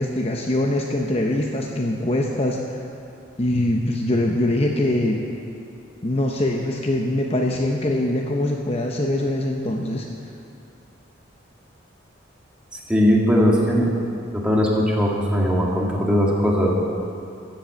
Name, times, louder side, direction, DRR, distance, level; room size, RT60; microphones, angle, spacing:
voice 1, 0.0-2.8 3.4-5.2 6.0-10.1, left 1 dB, 30° left, 1 dB, 0.7 m, -23 dB
voice 2, 12.9-13.9 14.3-16.7, equal, 5° right, -3 dB, 1.8 m, -19 dB
14.0 x 7.8 x 7.7 m, 2.6 s
head